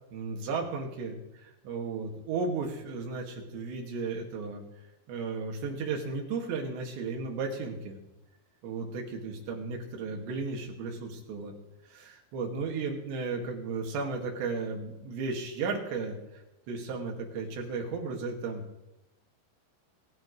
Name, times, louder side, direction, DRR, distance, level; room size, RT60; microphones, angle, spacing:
voice 1, 0.1-4.6 5.1-8.0 8.6-11.5 11.9-16.2 16.7-18.6, right 4 dB, 65° right, 1 dB, 4.2 m, -34 dB
24.5 x 11.5 x 3.2 m, 0.95 s
omnidirectional pair, 5.6 m